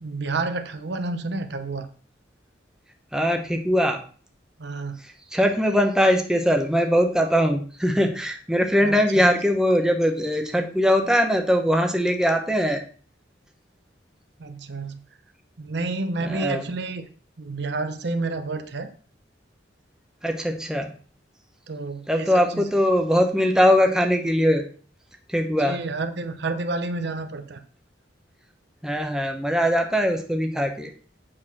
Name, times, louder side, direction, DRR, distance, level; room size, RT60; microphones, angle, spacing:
voice 1, 0.0-1.9 4.6-5.0 8.8-9.3 14.4-15.0 15.6-17.0 17.4-18.9 21.7-22.7 25.6-27.6, right 3 dB, 65° right, 9 dB, 0.8 m, -30 dB
voice 2, 3.1-4.0 5.0-12.8 16.2-16.7 20.2-20.9 22.1-24.6 25.3-25.8 28.8-30.9, equal, 5° right, 4 dB, 0.9 m, -21 dB
7.7 x 4.1 x 6.1 m, 0.42 s
head